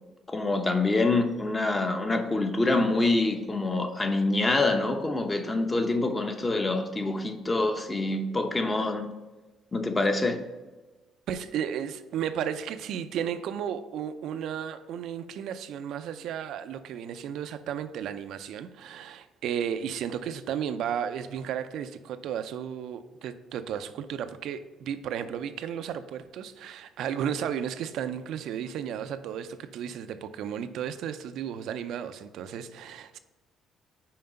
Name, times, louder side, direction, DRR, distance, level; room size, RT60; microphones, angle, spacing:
voice 1, 0.3-9.0 9.7-10.4, left 2 dB, 20° left, 0.9 m, -26 dB
voice 2, 11.3-33.2, right 8 dB, 75° right, 0.5 m, -34 dB
5.8 x 4.7 x 5.2 m
cardioid pair, 100°, 0 cm